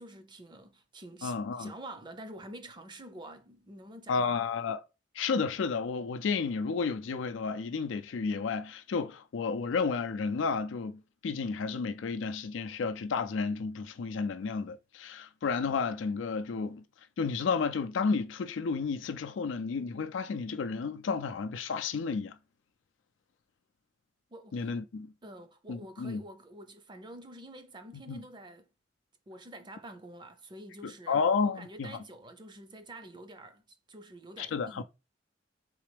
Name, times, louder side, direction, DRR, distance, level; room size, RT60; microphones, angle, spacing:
voice 1, 0.0-4.3 24.3-24.7 25.2-28.7 29.3-34.8, right 1 dB, 25° right, 0.5 m, -48 dB
voice 2, 1.2-1.7 4.1-4.8 5.2-16.8 17.2-22.4 24.5-25.1 25.7-26.2 28.1-28.2 30.8-32.0 34.4-34.8, left 5 dB, 85° left, 0.4 m, -32 dB
3.8 x 3.3 x 3.3 m
head